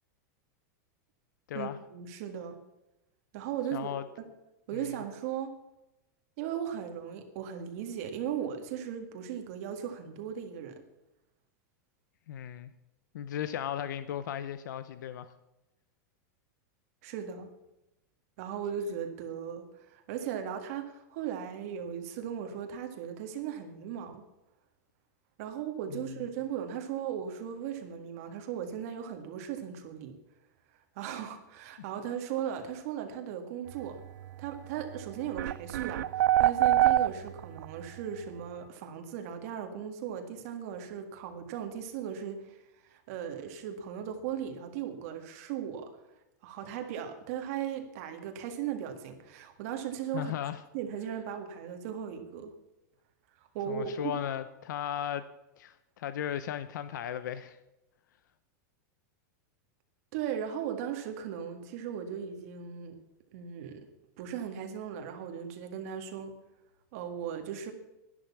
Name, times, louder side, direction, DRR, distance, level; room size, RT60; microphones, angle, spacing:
voice 1, 1.5-2.6 3.3-4.3 4.7-5.5 6.4-10.8 17.0-17.5 18.4-24.2 25.4-30.1 31.0-34.0 34.4-45.9 46.4-50.3 50.7-52.5 53.4-54.1 60.1-63.0 63.3-63.9 64.2-66.3 66.9-67.7, right 8 dB, 55° right, 5 dB, 1.9 m, -37 dB
voice 2, 3.7-4.0 4.7-4.9 12.3-12.7 13.1-15.3 25.9-26.2 50.1-50.6 53.7-55.3 55.6-57.6, left 10 dB, 85° left, 14 dB, 0.8 m, -36 dB
sound 1, 34.8-34.9 35.4-37.6, right 13 dB, 90° right, 0.4 m, -24 dB
11.5 x 11.0 x 7.2 m, 0.94 s
supercardioid pair, 160°, 10 cm